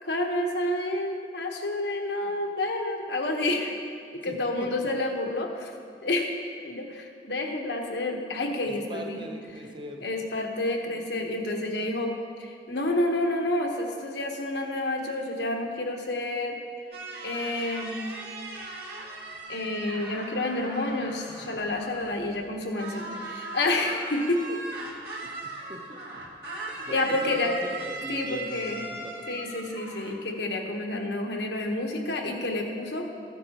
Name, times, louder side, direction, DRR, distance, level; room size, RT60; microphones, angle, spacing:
voice 1, 0.0-3.8 4.2-5.7 6.0-6.4 6.6-9.2 10.0-12.1 12.4-16.6 17.2-18.0 19.5-24.6 26.9-27.5 28.1-28.8 29.3-33.1, left 2 dB, 80° left, 2 dB, 1.2 m, -29 dB
voice 2, 8.7-10.0 25.2-26.0 26.9-29.3, right 1 dB, 25° right, 3 dB, 0.8 m, -41 dB
sound 1, 16.9-22.5 22.8-30.2, right 2 dB, 65° right, 1.7 m, -39 dB
14.5 x 10.5 x 3.0 m, 2.3 s
head